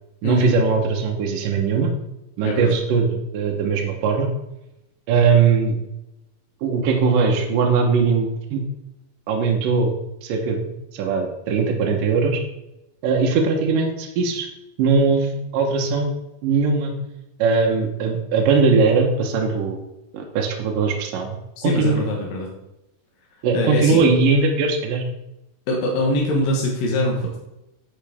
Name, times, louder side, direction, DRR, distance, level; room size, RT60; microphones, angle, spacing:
voice 1, 0.2-1.9 2.4-4.3 5.1-5.8 6.6-8.6 9.3-9.9 10.2-10.6 10.9-12.4 13.0-14.5 14.8-16.1 16.4-16.9 17.4-19.8 20.1-21.4 21.6-22.0 23.4-25.0, right 4 dB, 75° right, 1 dB, 2.7 m, -20 dB
voice 2, 2.4-2.7 21.6-22.5 23.5-24.1 25.7-27.4, left 1 dB, 75° left, -2 dB, 3.1 m, -23 dB
10.5 x 8.1 x 3.6 m, 0.91 s
omnidirectional pair, 4.1 m